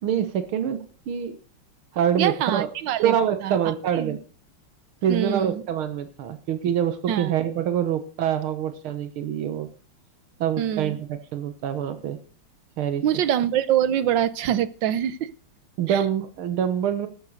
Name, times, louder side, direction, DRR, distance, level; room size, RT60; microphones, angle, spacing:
voice 1, 0.0-1.4 1.9-2.7 3.0-4.2 5.0-9.7 10.4-12.2 12.8-13.0 15.8-17.1, right 9 dB, 85° right, 11 dB, 2.1 m, -25 dB
voice 2, 2.2-3.2 3.4-4.2 5.1-5.6 7.1-7.3 10.6-11.0 13.0-15.3 15.9-16.0, right 10 dB, 70° right, 17 dB, 1.5 m, -25 dB
13.5 x 9.3 x 6.5 m, 0.38 s
omnidirectional pair, 2.3 m